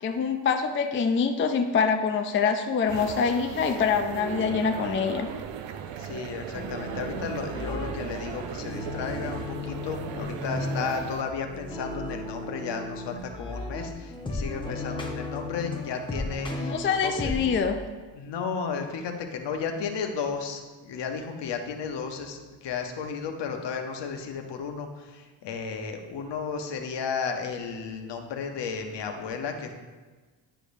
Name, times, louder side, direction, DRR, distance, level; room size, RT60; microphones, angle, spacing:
voice 1, 0.0-5.3 16.6-17.8, left 6 dB, 30° left, 5 dB, 0.4 m, -25 dB
sound 1, 2.9-11.2, right 8 dB, 80° right, 0.6 m, -37 dB
voice 2, 6.0-16.7 17.0-17.4 18.1-29.7, left 5 dB, 65° left, 4 dB, 1.0 m, -33 dB
sound 2, 6.5-17.6, left 2 dB, 10° left, 0.9 m, -35 dB
10.0 x 4.9 x 2.7 m, 1.3 s
cardioid pair, 90°, 45 cm